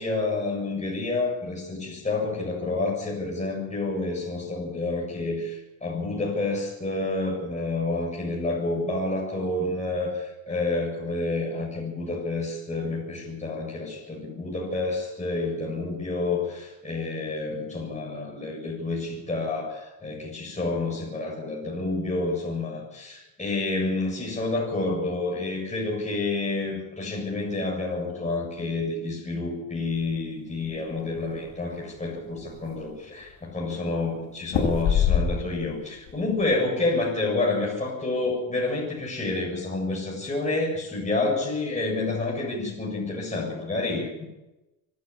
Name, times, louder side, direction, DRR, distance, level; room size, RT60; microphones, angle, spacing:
voice 1, 0.0-44.3, left 2 dB, 15° left, -3 dB, 7.6 m, -29 dB
sound 1, 30.6-31.5 32.0-32.1 32.3-33.0 34.5-35.7 36.1-36.5, left 7 dB, 75° left, 7.1 m, -25 dB
25.5 x 12.5 x 8.8 m, 0.98 s
cardioid pair, 100°, 43 cm